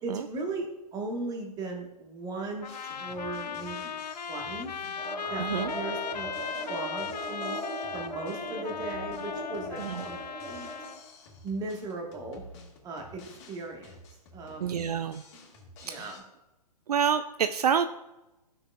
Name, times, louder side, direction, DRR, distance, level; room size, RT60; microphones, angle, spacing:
voice 1, 0.0-2.7 3.0-3.9 4.3-4.7 5.3-6.3 6.7-7.6 7.9-10.2 10.4-10.7 11.4-12.4 12.8-13.2 13.5-13.9 14.3-14.8 15.8-16.2, right 3 dB, 20° right, 1 dB, 1.4 m, -37 dB
sound 1, 2.6-11.0, left 6 dB, 80° left, 0.5 m, -37 dB
Drum kit, 2.6-16.2, left 1 dB, 40° left, 2.0 m, -51 dB
sound 2, 5.0-10.9, right 1 dB, 10° left, 2.5 m, -39 dB
voice 2, 5.4-5.7 9.8-10.1 14.6-15.2 15.8-16.1 16.9-17.9, right 8 dB, 65° right, 10 dB, 0.4 m, -28 dB
12.0 x 6.1 x 2.3 m, 0.99 s
figure-of-eight pair, 125°, 21 cm